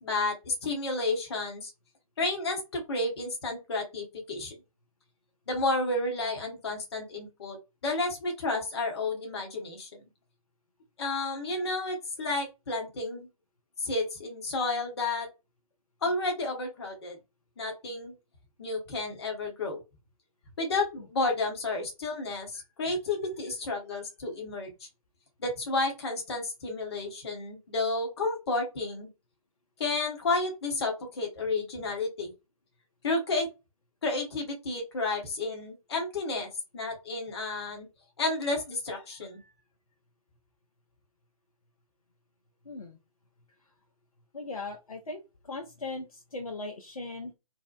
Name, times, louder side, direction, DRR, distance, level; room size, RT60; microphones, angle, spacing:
voice 1, 0.0-1.7 2.2-4.5 5.5-7.6 7.8-10.0 11.0-13.3 13.8-15.3 16.0-17.2 17.6-18.1 18.6-19.8 20.6-24.7 25.4-29.1 29.8-32.3 33.0-33.5 34.0-36.5 36.7-37.9 38.2-39.4, left 2 dB, 45° left, 1 dB, 0.8 m, -31 dB
voice 2, 42.7-43.0 44.3-45.2 45.4-47.3, left 3 dB, 75° left, 2 dB, 0.5 m, -38 dB
2.7 x 2.0 x 2.3 m, 0.25 s
figure-of-eight pair, 130°, 18 cm